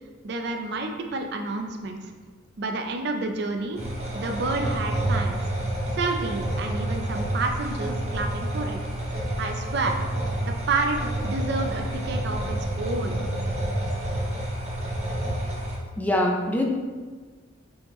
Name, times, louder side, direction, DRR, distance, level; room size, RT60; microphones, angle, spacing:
voice 1, 0.2-2.1 2.6-3.8 4.1-5.4 5.9-8.8 9.4-10.0 10.4-13.2, right 3 dB, 60° right, 3 dB, 0.4 m, -29 dB
sound 1, 3.7-15.8, right 1 dB, 35° right, 1.0 m, -29 dB
voice 2, 16.0-16.6, left 1 dB, 10° left, 0 dB, 0.4 m, -23 dB
4.6 x 3.4 x 3.0 m, 1.4 s
head